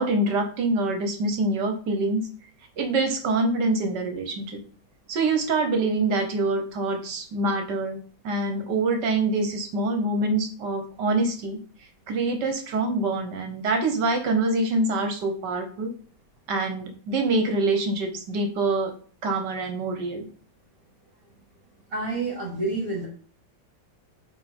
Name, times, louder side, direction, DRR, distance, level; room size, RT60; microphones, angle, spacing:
voice 1, 0.0-2.3 2.8-4.6 5.1-8.0 8.2-11.6 12.1-15.9 16.5-18.9 19.2-20.3, right 2 dB, 75° right, 5 dB, 1.5 m, -25 dB
voice 2, 21.9-23.1, right 3 dB, 50° right, -2 dB, 2.0 m, -28 dB
8.6 x 3.3 x 4.2 m, 0.43 s
omnidirectional pair, 1.9 m